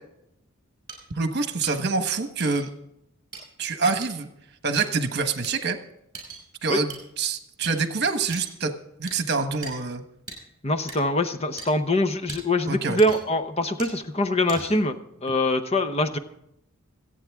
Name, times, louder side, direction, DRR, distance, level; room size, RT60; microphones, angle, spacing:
sound 1, 0.9-1.0 1.6-1.7 2.4-2.6 3.3-3.4 4.0-4.1 4.8-4.9 5.4-5.5 6.1-6.4 6.9-7.0 7.6-7.7 8.3-8.6 9.1-9.2 9.6-9.7 10.3-10.4 10.9-11.0 11.6-11.7 12.3-12.4 13.0-13.4 13.8-13.9 14.5-14.9, right 4 dB, 20° right, 5.6 m, -39 dB
voice 1, 1.1-2.7 3.6-4.3 4.6-5.8 6.6-8.7 9.0-10.0 12.7-13.0, right 4 dB, 50° right, 7 dB, 1.2 m, -26 dB
voice 2, 10.6-16.2, left 1 dB, 30° left, 9 dB, 0.8 m, -24 dB
26.0 x 8.8 x 3.6 m, 0.79 s
head